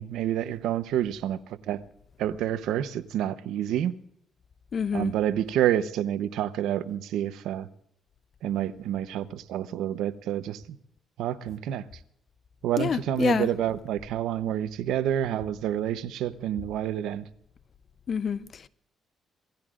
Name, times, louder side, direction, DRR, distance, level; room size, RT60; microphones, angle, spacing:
voice 1, 0.0-1.8 2.2-3.9 4.9-7.7 8.4-10.8 11.2-11.8 12.6-17.3, right 11 dB, 85° right, 0.8 m, -28 dB
voice 2, 4.7-5.1 12.8-13.5 18.1-18.7, left 7 dB, 50° left, 0.6 m, -28 dB
27.5 x 17.5 x 2.5 m
cardioid pair, 90°, 0 cm